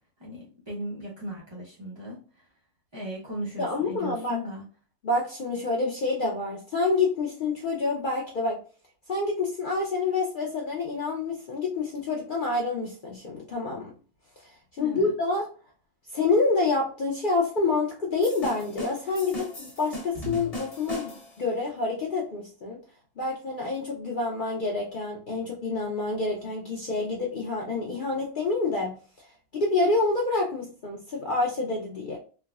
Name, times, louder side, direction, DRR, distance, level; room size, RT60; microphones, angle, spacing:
voice 1, 0.2-2.2 2.9-4.6 14.8-15.1, equal, 40° right, -6 dB, 0.3 m, -37 dB
voice 2, 3.6-4.4 5.0-8.6 9.1-13.9 14.8-15.5 16.1-21.1 21.4-22.8 23.2-28.9 29.5-32.2, left 3 dB, 60° left, -1 dB, 0.5 m, -27 dB
sound 1, 18.2-21.4, equal, 30° left, 1.0 m, -38 dB
3.3 x 2.1 x 2.3 m, 0.38 s
omnidirectional pair, 1.4 m